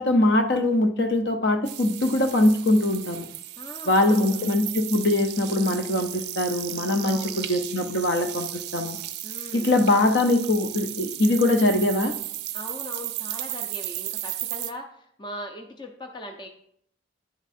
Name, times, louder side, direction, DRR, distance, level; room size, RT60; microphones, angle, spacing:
voice 1, 0.0-3.3 3.9-9.0 9.5-12.1, left 1 dB, 60° left, 6 dB, 0.7 m, -22 dB
sound 1, 1.6-14.7, right 14 dB, 55° right, 0.4 m, -35 dB
voice 2, 3.6-4.4 7.0-7.5 9.2-9.7 12.5-16.5, left 1 dB, 25° left, 4 dB, 0.5 m, -40 dB
10.0 x 3.5 x 4.2 m, 0.69 s
head